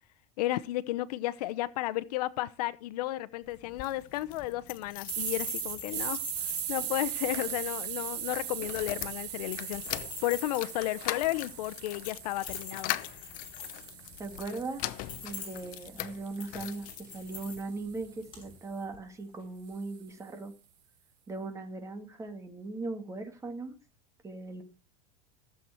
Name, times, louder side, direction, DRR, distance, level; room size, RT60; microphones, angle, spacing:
voice 1, 0.4-6.2 6.7-12.9, left 16 dB, 80° left, 0.8 m, -33 dB
sound 1, 3.4-18.5, left 5 dB, 25° left, 5.5 m, -46 dB
sound 2, 3.6-17.6 18.2-19.1 19.4-19.5 19.7-19.8, left 17 dB, 45° left, 0.8 m, -42 dB
sound 3, 5.0-13.1 13.6-17.8, right 11 dB, 85° right, 4.1 m, -39 dB
voice 2, 14.2-14.9 15.2-16.9 17.1-20.5 21.3-23.7 24.2-24.6, right 3 dB, 15° right, 2.2 m, -39 dB
15.5 x 7.8 x 4.4 m
supercardioid pair, 150°, 20 cm